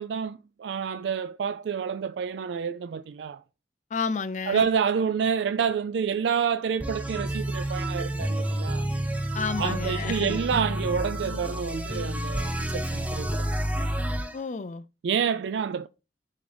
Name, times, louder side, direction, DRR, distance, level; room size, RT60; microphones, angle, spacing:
voice 1, 0.0-3.4 4.5-8.9 9.6-13.4 15.0-15.9, right 7 dB, 80° right, 0.3 m, -28 dB
voice 2, 3.9-4.7 9.3-10.4 14.3-14.8, left 5 dB, 40° left, 0.4 m, -31 dB
sound 1, 6.8-14.3, right 1 dB, 10° right, 0.6 m, -29 dB
10.5 x 3.9 x 3.3 m
head